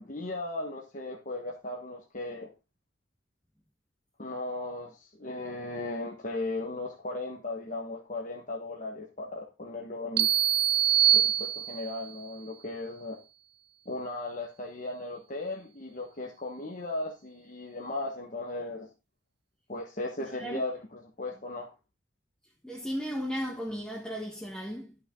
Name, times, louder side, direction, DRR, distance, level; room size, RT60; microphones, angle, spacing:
voice 1, 0.0-2.5 4.2-10.3 11.1-13.2 13.8-18.9 19.7-21.7, left 2 dB, 40° left, 1.3 m, -37 dB
sound 1, 10.2-12.0, right 10 dB, 55° right, 0.5 m, -24 dB
voice 2, 20.3-20.6 22.6-25.0, equal, 5° left, 1.4 m, -35 dB
12.5 x 6.0 x 3.8 m
head